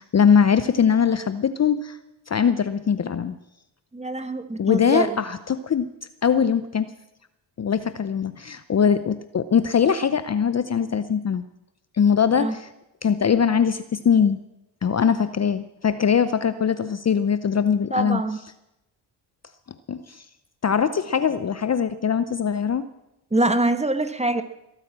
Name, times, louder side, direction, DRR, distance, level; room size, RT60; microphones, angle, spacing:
voice 1, 0.0-2.0 2.3-3.4 4.6-5.9 6.2-6.9 7.6-11.4 12.0-12.7 13.0-14.4 14.8-18.2 19.9-20.2 20.6-22.9, left 7 dB, 35° left, 13 dB, 0.7 m, -21 dB
voice 2, 3.9-5.2 12.4-12.6 17.9-18.4 23.3-24.4, right 2 dB, 15° right, 9 dB, 1.4 m, -24 dB
21.0 x 9.1 x 7.4 m, 0.92 s
supercardioid pair, 60°, 49 cm